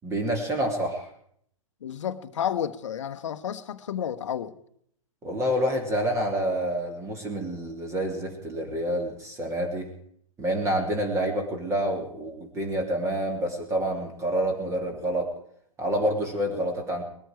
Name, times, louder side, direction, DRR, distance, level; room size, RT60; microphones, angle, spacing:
voice 1, 0.0-1.1 5.2-9.9 10.4-15.3 15.8-17.0, right 1 dB, 15° right, 4 dB, 2.5 m, -28 dB
voice 2, 1.8-4.6, left 9 dB, 60° left, 9 dB, 1.1 m, -31 dB
20.5 x 13.5 x 4.6 m, 0.66 s
figure-of-eight pair, 115°, 17 cm